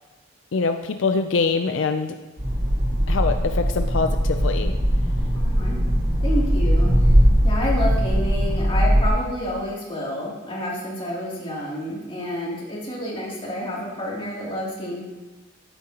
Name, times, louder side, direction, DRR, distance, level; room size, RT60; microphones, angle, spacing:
voice 1, 0.5-2.2 3.1-4.8, left 4 dB, 85° left, 7 dB, 0.5 m, -24 dB
sound 1, 2.4-9.1, equal, 65° right, 2.0 m, -20 dB
voice 2, 5.3-5.8 6.2-7.1 7.4-15.0, left 1 dB, 30° left, -5 dB, 2.9 m, -29 dB
14.5 x 8.7 x 2.9 m, 1.1 s
head